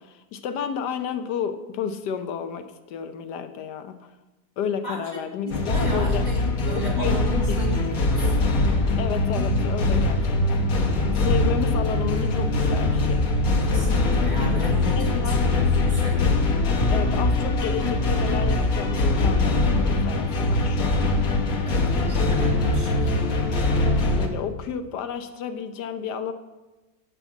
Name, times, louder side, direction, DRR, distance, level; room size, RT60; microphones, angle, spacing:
voice 1, 0.0-4.1 4.6-6.3 6.8-7.6 9.0-10.6 11.2-13.2 14.9-15.4 16.9-21.0 24.1-26.3, left 7 dB, 90° left, 9 dB, 1.4 m, -31 dB
voice 2, 4.8-6.4 6.7-8.4 13.6-16.3 21.7-23.1, right 1 dB, 25° right, -2 dB, 2.2 m, -35 dB
sound 1, 5.5-24.3, left 2 dB, 60° left, 1.5 m, -22 dB
10.5 x 5.8 x 7.1 m, 1.1 s
omnidirectional pair, 1.7 m